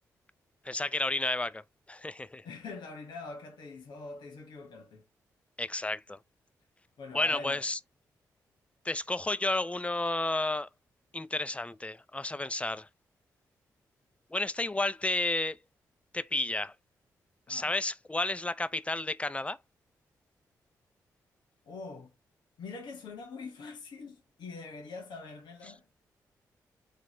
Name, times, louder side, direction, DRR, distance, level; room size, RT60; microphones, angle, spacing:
voice 1, 0.7-1.6 1.9-2.4 5.6-6.2 7.1-7.8 8.9-10.7 11.1-12.9 14.3-15.6 16.1-16.7 17.5-19.6, left 2 dB, 15° left, 0.5 m, -31 dB
voice 2, 2.4-5.0 7.0-7.6 17.5-17.7 21.7-22.1 22.6-25.9, left 3 dB, 70° left, 1.2 m, -44 dB
3.9 x 3.2 x 2.9 m
hypercardioid pair, 40°, 8 cm